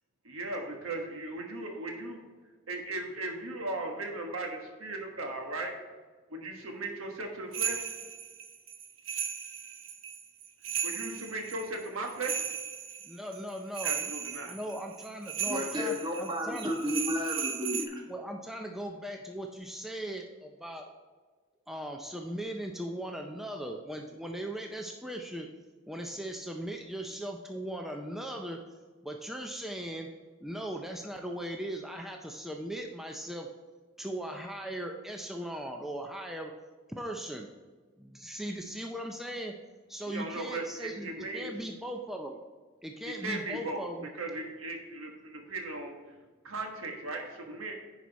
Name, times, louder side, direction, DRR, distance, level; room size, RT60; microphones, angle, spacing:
voice 1, 0.2-2.2 2.7-5.7 6.3-7.9 10.8-12.4 13.8-14.6 40.1-41.5 43.0-43.9 44.1-45.9 46.4-47.8, right 2 dB, 85° right, 2 dB, 1.4 m, -37 dB
sound 1, 7.5-17.8, right 8 dB, 70° right, 0.7 m, -36 dB
voice 2, 13.0-14.1 14.5-16.7 18.1-20.9 21.7-25.5 25.9-28.6 29.0-30.1 30.4-33.5 34.0-36.5 36.9-37.5 38.0-39.5 39.9-42.4 42.8-44.1, right 1 dB, ahead, 2 dB, 0.4 m, -38 dB
voice 3, 15.5-18.0, left 1 dB, 20° right, 0 dB, 1.3 m, -32 dB
10.0 x 4.8 x 4.1 m, 1.4 s
head